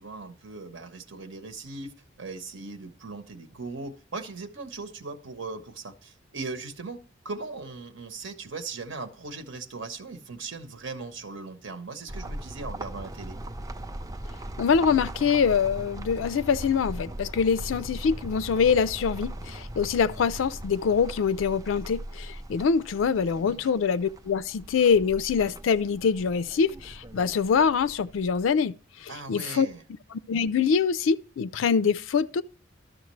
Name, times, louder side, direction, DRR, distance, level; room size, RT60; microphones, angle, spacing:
voice 1, 0.0-13.4 23.2-23.6 29.1-29.8, right 3 dB, 80° right, 1.0 m, -39 dB
sound 1, 12.1-28.5, right 1 dB, 20° right, 0.4 m, -40 dB
voice 2, 14.6-28.7 29.0-29.7 30.1-32.4, left 6 dB, 85° left, 0.4 m, -24 dB
12.5 x 6.4 x 3.1 m
head